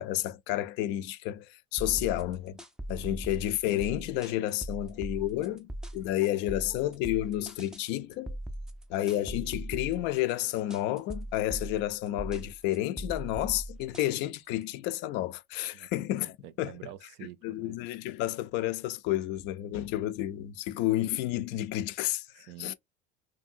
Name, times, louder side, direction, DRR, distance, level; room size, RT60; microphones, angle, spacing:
voice 1, 0.0-2.6 2.9-8.4 8.9-16.7 17.4-22.7, left 14 dB, 60° left, 0.4 m, -31 dB
sound 1, 1.8-14.6, right 1 dB, 5° right, 0.4 m, -40 dB
voice 2, 16.2-17.8 19.7-19.8 22.4-22.7, right 13 dB, 60° right, 0.4 m, -48 dB
2.7 x 2.6 x 2.6 m
supercardioid pair, 110°, 21 cm